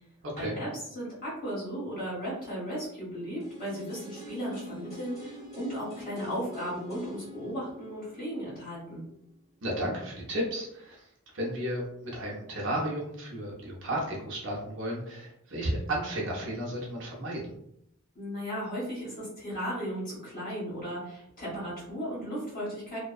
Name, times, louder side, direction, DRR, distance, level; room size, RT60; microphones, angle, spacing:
voice 1, 0.3-9.0 18.1-23.0, equal, 40° left, -8 dB, 1.4 m, -36 dB
sound 1, 3.4-9.3 9.6-9.7, left 2 dB, 15° left, 1.2 m, -45 dB
voice 2, 9.6-11.0 11.3-17.4, right 1 dB, 55° right, -3 dB, 0.6 m, -33 dB
2.5 x 2.2 x 2.3 m, 0.76 s
head